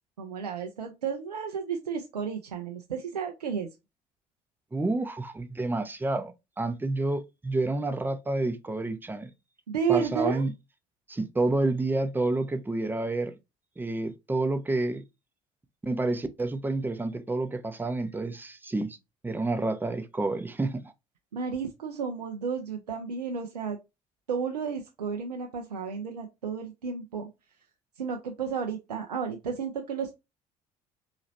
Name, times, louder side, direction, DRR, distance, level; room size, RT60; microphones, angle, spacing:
voice 1, 0.2-3.7 9.7-10.4 21.3-23.8 24.3-27.3 28.0-30.1, right 6 dB, 80° right, 0.5 m, -32 dB
voice 2, 4.7-9.3 9.9-10.5 11.1-13.3 13.8-15.0 15.8-19.0 19.2-20.9, right 2 dB, 10° right, 0.6 m, -29 dB
4.0 x 2.9 x 2.6 m
figure-of-eight pair, 50°, 20 cm